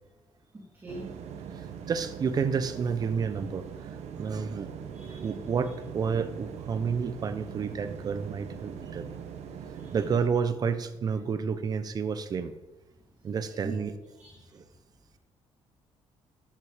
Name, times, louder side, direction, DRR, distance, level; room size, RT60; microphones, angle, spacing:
sound 1, 0.9-10.3, right 7 dB, 75° right, 1.5 m, -41 dB
voice 1, 1.9-3.7 4.2-4.7 5.1-9.1 9.9-12.5 13.2-13.9 14.5-14.6, right 6 dB, 35° right, 12 dB, 0.9 m, -30 dB
voice 2, 4.9-5.4 9.7-10.0 13.6-13.8 14.2-14.5, right 3 dB, 20° right, -6 dB, 3.2 m, -42 dB
13.0 x 11.5 x 5.1 m, 1.1 s
cardioid pair, 155°, 11 cm